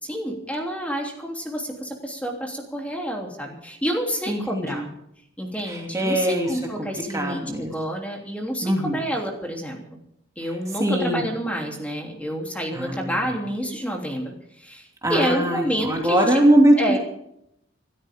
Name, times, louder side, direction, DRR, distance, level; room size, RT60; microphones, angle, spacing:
voice 1, 0.0-4.9 5.4-9.8 10.4-16.4 16.8-17.0, equal, 5° left, 0 dB, 3.3 m, -29 dB
voice 2, 4.3-4.8 5.6-6.6 7.1-7.7 8.6-9.0 10.4-10.5 10.8-11.2 12.7-13.2 15.0-17.0, right 1 dB, 15° right, 0 dB, 2.9 m, -21 dB
27.0 x 13.5 x 3.8 m, 0.75 s
head